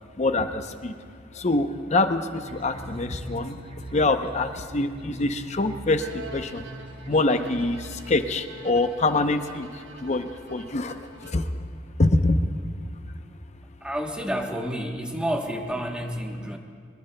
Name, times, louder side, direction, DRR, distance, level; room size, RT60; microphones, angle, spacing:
voice 1, 1.4-3.5 3.9-4.5 4.7-6.0 6.3-6.6 7.1-7.8 8.1-9.7 10.0-10.2 10.5-10.9 11.3-11.4 12.0-12.4, left 2 dB, 35° left, 8 dB, 0.7 m, -24 dB
sound 1, 2.4-8.4, right 1 dB, 30° right, 0.8 m, -42 dB
Bowed string instrument, 6.0-11.7, right 1 dB, 70° right, 0.9 m, -46 dB
voice 2, 13.8-16.6, equal, 5° right, 2 dB, 1.1 m, -29 dB
23.0 x 21.0 x 2.2 m, 2.1 s
head